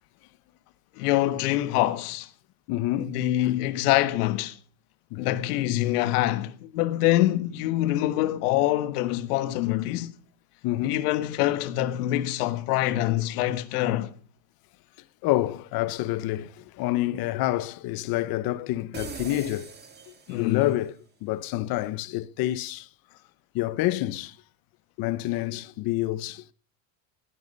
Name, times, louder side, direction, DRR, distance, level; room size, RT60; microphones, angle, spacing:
voice 1, 1.0-2.3 3.0-4.6 5.2-10.1 10.8-14.1 20.3-20.7, left 15 dB, 85° left, 1.5 m, -25 dB
voice 2, 2.7-3.2 5.1-5.4 10.6-11.0 15.2-19.7 20.3-20.9 21.2-22.9 23.5-24.3 25.0-26.5, left 15 dB, 50° left, 1.0 m, -28 dB
sound 1, 18.9-20.8, right 5 dB, 20° right, 2.6 m, -41 dB
18.0 x 11.0 x 5.4 m
supercardioid pair, 140°, 45 cm